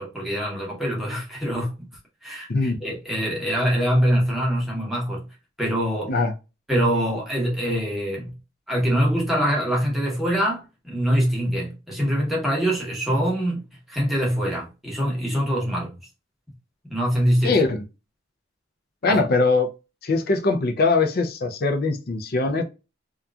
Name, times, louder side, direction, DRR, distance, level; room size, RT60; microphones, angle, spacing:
voice 1, 0.0-1.9 2.2-5.2 5.6-6.1 6.7-8.3 8.7-15.9 16.9-17.6 19.1-19.2, equal, ahead, 0.9 m, -24 dB
voice 2, 17.4-17.8 19.0-19.7 20.0-22.6, left 3 dB, 50° left, 0.5 m, -21 dB
2.8 x 2.4 x 2.3 m
head